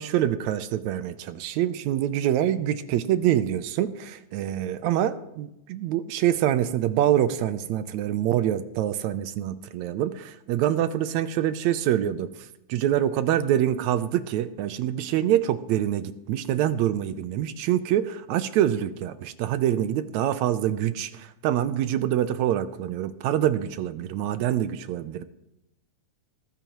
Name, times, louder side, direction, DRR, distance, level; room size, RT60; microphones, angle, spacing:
voice 1, 0.0-25.2, right 11 dB, 75° right, 12 dB, 1.8 m, -25 dB
19.5 x 14.5 x 3.0 m, 0.86 s
omnidirectional pair, 3.7 m